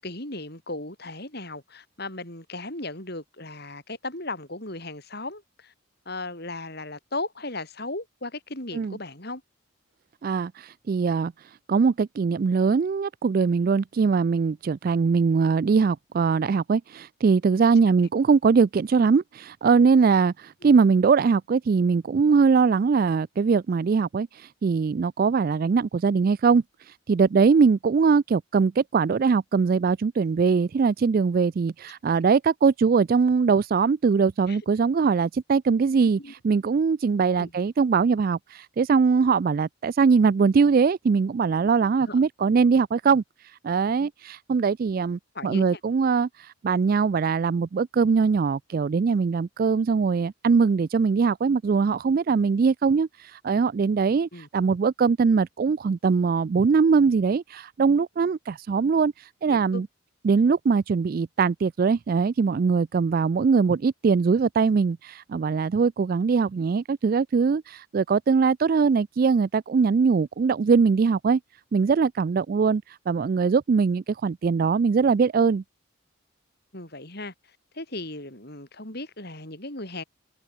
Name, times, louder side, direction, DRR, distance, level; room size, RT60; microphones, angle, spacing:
voice 1, 0.0-5.7 6.1-9.4 20.6-20.7 34.5-34.6 36.2-36.3 37.4-37.5 42.1-42.2 45.3-45.7 54.3-54.5 59.5-59.9 76.7-77.3 77.7-80.0, left 2 dB, 50° left, 7.7 m, -36 dB
voice 2, 10.2-11.3 11.7-24.3 24.6-26.6 27.1-43.2 43.6-46.3 46.6-53.1 53.4-59.1 59.4-59.9 60.2-71.4 71.7-75.6, right 5 dB, 45° right, 0.3 m, -21 dB
head